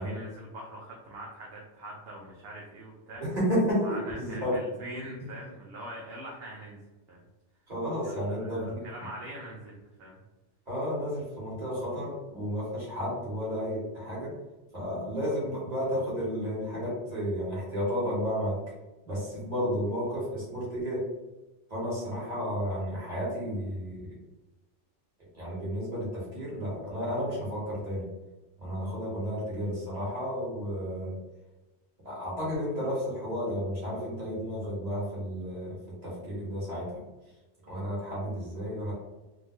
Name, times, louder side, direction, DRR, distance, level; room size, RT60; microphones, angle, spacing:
voice 1, 0.0-3.2 3.8-6.8 7.1-7.2 8.0-10.2, right 1 dB, 60° right, -3 dB, 0.9 m, -43 dB
voice 2, 3.2-4.6 5.2-5.3 7.7-8.8 10.7-14.3 14.7-18.6 19.0-21.0 21.7-24.1 25.3-28.1 28.6-31.1 32.0-35.8 36.0-37.0 37.7-38.9, equal, 35° right, -8 dB, 1.7 m, -32 dB
3.7 x 2.3 x 3.0 m, 1.1 s
omnidirectional pair, 1.2 m